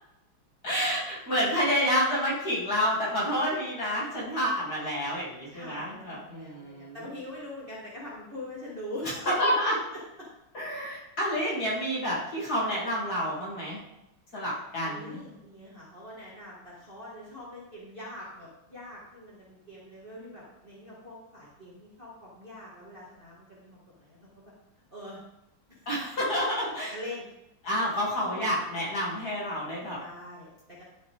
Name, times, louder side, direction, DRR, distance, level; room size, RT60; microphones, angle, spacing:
voice 1, 0.6-7.0 9.2-9.7 10.5-13.8 14.3-15.2 25.9-26.9 27.6-30.0, equal, 45° left, -7 dB, 3.4 m, -29 dB
voice 2, 5.5-9.7 10.2-10.3 14.8-24.3 24.9-25.2 25.7-26.0 26.9-27.3 28.2-28.5 30.0-30.8, left 1 dB, 25° right, -7 dB, 2.0 m, -43 dB
11.5 x 5.5 x 3.6 m, 0.89 s
omnidirectional pair, 2.3 m